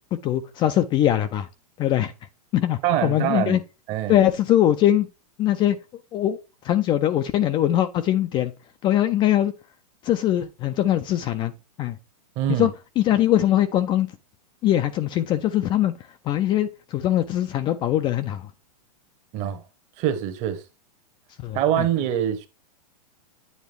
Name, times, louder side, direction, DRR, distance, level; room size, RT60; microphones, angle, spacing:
voice 1, 0.2-1.5 1.8-2.1 2.5-3.6 4.1-5.1 5.4-5.8 6.1-6.4 6.6-8.5 8.8-9.5 10.0-11.5 11.8-12.0 12.6-12.7 13.0-14.1 14.6-15.9 16.3-18.5 21.4-21.9, left 12 dB, 25° left, 0.4 m, -21 dB
voice 2, 2.8-3.6 3.9-4.2 12.4-12.7 19.3-19.6 20.0-20.6 21.5-22.5, right 11 dB, 35° right, 1.1 m, -24 dB
9.5 x 3.4 x 3.4 m
hypercardioid pair, 135°, 20 cm